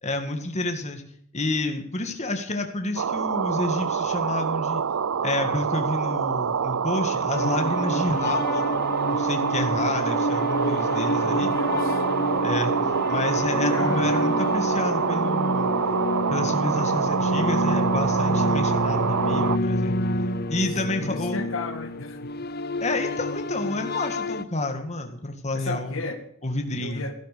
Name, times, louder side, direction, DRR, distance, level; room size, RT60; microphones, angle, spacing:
voice 1, 0.0-1.0 1.3-4.8 5.2-8.8 9.1-11.5 12.4-12.7 13.1-15.7 16.3-20.0 20.5-21.5 22.8-26.0 26.4-27.0, left 2 dB, 35° left, 5 dB, 2.0 m, -29 dB
sound 1, 3.0-19.6, right 6 dB, 90° right, 0.5 m, -26 dB
sound 2, 7.3-24.4, left 1 dB, 50° left, 0.8 m, -28 dB
voice 2, 11.2-12.0 13.7-14.3 21.0-22.3 25.5-26.2 26.8-27.1, left 2 dB, 75° left, 6 dB, 1.9 m, -34 dB
16.0 x 11.5 x 6.9 m, 0.67 s
head